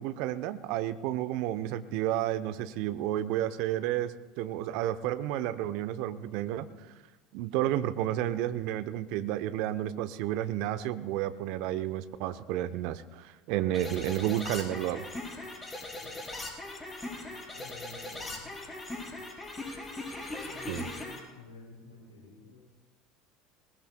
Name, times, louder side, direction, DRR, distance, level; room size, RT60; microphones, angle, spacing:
voice 1, 0.0-6.7 7.3-15.0 20.7-20.9, right 13 dB, 60° right, 12 dB, 0.7 m, -31 dB
sound 1, 13.7-21.2, left 2 dB, 20° left, 4.5 m, -40 dB
voice 2, 15.9-16.2 17.5-18.5 20.4-22.6, left 3 dB, 85° left, -4 dB, 5.4 m, -51 dB
21.0 x 20.5 x 2.3 m, 1.2 s
figure-of-eight pair, 70°, 0 cm